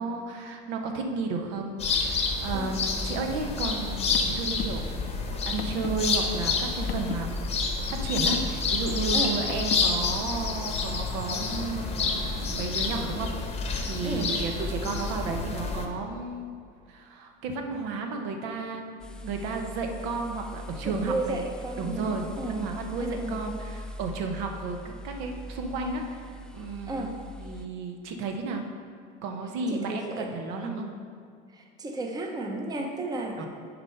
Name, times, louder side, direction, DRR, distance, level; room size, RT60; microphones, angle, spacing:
voice 1, 0.0-7.3 7.9-13.3 13.8-16.5 16.9-21.4 21.8-27.1 27.4-28.6 29.2-30.9 33.4-33.5, right 4 dB, 75° right, 3 dB, 0.9 m, -33 dB
sound 1, 1.8-15.9, left 4 dB, 30° left, 0.9 m, -29 dB
Car, 3.8-10.0, left 6 dB, 80° left, 0.6 m, -40 dB
sound 2, 19.0-27.7, left 1 dB, 5° left, 0.3 m, -42 dB
voice 2, 20.8-22.7 23.0-23.4 26.9-27.2 29.7-30.3 30.6-30.9 31.5-33.5, right 2 dB, 20° right, 2 dB, 0.8 m, -33 dB
6.8 x 4.3 x 5.6 m, 2.2 s
cardioid pair, 120°, 20 cm